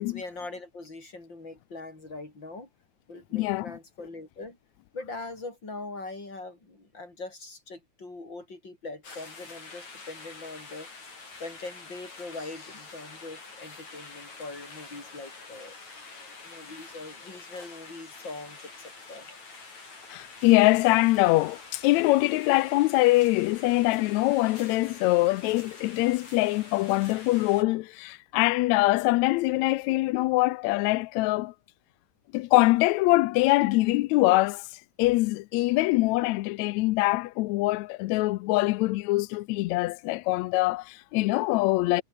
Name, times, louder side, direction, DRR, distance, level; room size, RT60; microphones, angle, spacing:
voice 1, 0.0-2.7 3.1-4.6 4.9-10.9 11.4-15.8 16.4-19.3, left 3 dB, 35° left, 7.9 m, -41 dB
voice 2, 3.3-3.7 20.1-31.5 32.3-42.0, left 20 dB, 80° left, 1.6 m, -23 dB
sound 1, 9.0-27.6, left 4 dB, 60° left, 7.9 m, -46 dB
omnidirectional pair, 3.7 m